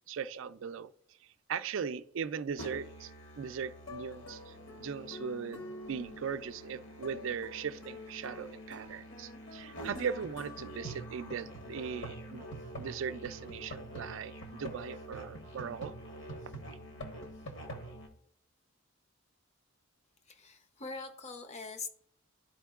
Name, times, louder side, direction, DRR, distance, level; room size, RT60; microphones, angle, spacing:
voice 1, 0.1-0.9 1.5-3.1 3.4-12.5 12.8-15.9, right 6 dB, 65° right, 0.4 m, -39 dB
Musical instrument, 2.6-18.1, equal, 60° left, 1.3 m, -45 dB
voice 2, 20.3-21.9, left 4 dB, 35° left, 0.6 m, -43 dB
12.0 x 4.4 x 2.4 m
head